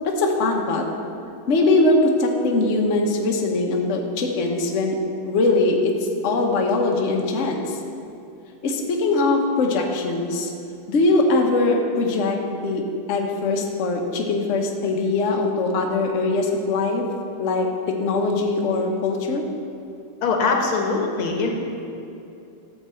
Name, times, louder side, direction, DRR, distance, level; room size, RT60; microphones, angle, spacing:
voice 1, 0.0-0.9 1.5-5.0 5.2-7.8 8.6-10.5 10.9-12.8 13.1-17.0 17.4-19.4, left 2 dB, 45° left, 1 dB, 1.0 m, -21 dB
voice 2, 20.2-21.5, left 4 dB, 80° left, 1 dB, 2.0 m, -22 dB
12.5 x 4.7 x 7.6 m, 2.6 s
omnidirectional pair, 2.4 m